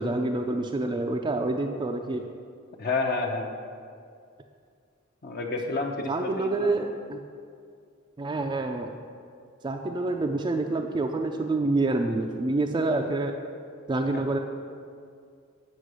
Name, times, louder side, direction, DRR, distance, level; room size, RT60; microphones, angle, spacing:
voice 1, 0.0-2.2 6.1-7.2 8.2-8.9 9.6-13.3 13.9-14.4, right 2 dB, 20° right, 3 dB, 0.3 m, -27 dB
voice 2, 2.8-3.5 5.2-6.7 14.1-14.2, left 3 dB, 50° left, 2 dB, 0.6 m, -29 dB
8.1 x 5.4 x 6.2 m, 2.2 s
head